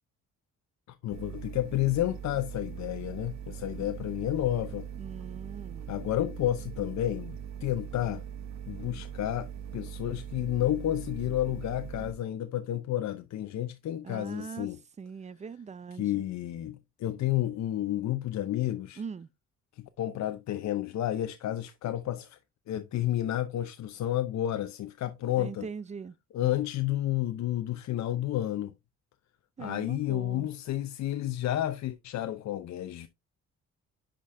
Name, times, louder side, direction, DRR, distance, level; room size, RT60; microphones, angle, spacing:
voice 1, 0.9-4.9 5.9-7.4 7.6-8.2 8.7-14.8 16.0-19.0 19.8-22.4 22.7-25.7 26.3-28.7 29.6-33.1, left 13 dB, 65° left, 0.6 m, -31 dB
sound 1, 1.1-12.1, right 8 dB, 65° right, 0.9 m, -41 dB
voice 2, 5.0-6.1 14.0-14.7 15.0-16.2 19.0-19.3 25.4-26.1 29.6-30.5, right 5 dB, 25° right, 0.4 m, -41 dB
10.0 x 5.1 x 2.6 m
cardioid pair, 90°, 30 cm